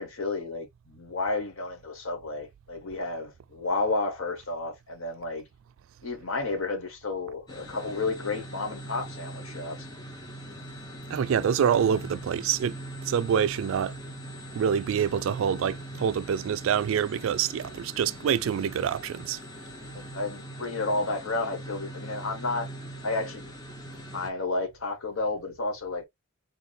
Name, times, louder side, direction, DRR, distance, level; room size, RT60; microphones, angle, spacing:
voice 1, 0.0-5.4 6.0-9.9 19.9-22.7 23.0-23.4 24.1-26.0, left 3 dB, 80° left, 1.2 m, -31 dB
sound 1, 7.5-24.3, right 1 dB, 20° left, 0.7 m, -41 dB
voice 2, 11.1-12.8 13.1-13.9 14.5-19.4, right 8 dB, 75° right, 0.3 m, -26 dB
3.9 x 2.2 x 3.4 m
head